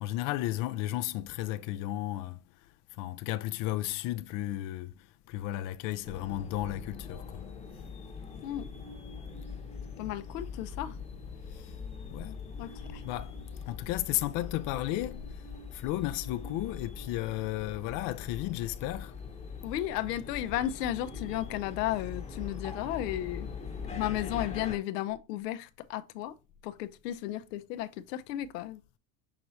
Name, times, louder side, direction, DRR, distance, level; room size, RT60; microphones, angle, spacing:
voice 1, 0.0-2.4 3.0-4.9 5.3-7.4 12.1-12.4 13.0-13.3 13.7-15.3 15.7-19.1, left 15 dB, 45° left, 0.5 m, -33 dB
sound 1, 6.0-24.8, left 5 dB, 15° left, 0.9 m, -42 dB
voice 2, 10.0-11.0 12.6-13.0 19.6-23.5 23.8-26.3 26.6-28.8, left 13 dB, 80° left, 0.7 m, -34 dB
6.0 x 3.1 x 2.6 m
supercardioid pair, 115°, 48 cm